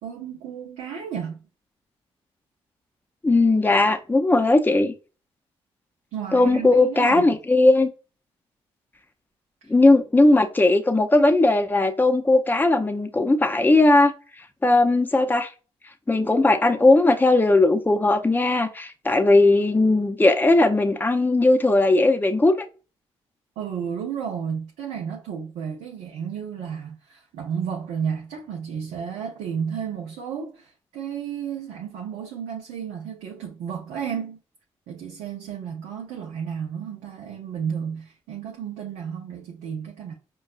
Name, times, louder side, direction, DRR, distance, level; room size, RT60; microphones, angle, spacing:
voice 1, 0.0-1.4 6.1-7.4 9.6-9.7 23.6-34.4 34.9-40.1, right 7 dB, 85° right, 0.6 m, -32 dB
voice 2, 3.2-4.9 6.3-7.9 9.7-14.1 14.6-15.5 16.1-22.5, left 2 dB, 15° left, 0.6 m, -18 dB
5.3 x 2.3 x 2.3 m
hypercardioid pair, 45°, 12 cm